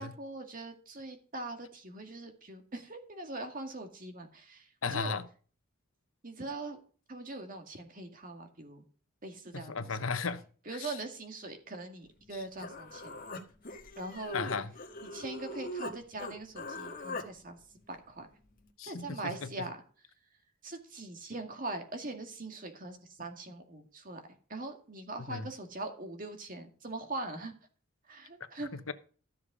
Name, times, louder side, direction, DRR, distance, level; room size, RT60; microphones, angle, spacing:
voice 1, 0.0-5.1 6.2-6.8 7.1-8.8 9.2-10.0 10.7-13.1 14.0-14.4 15.0-17.6 17.9-18.3 18.8-19.8 20.6-24.2 24.5-27.5 28.1-28.8, right 2 dB, 40° right, 2.1 m, -42 dB
voice 2, 4.8-5.3 9.5-10.4 14.3-14.7 18.8-19.5 25.3-25.4 28.9-29.0, left 5 dB, 80° left, 1.0 m, -35 dB
Human voice, 12.2-12.3 12.6-15.9 16.2-17.3, left 1 dB, 45° left, 1.7 m, -41 dB
13.5 x 7.1 x 4.9 m
head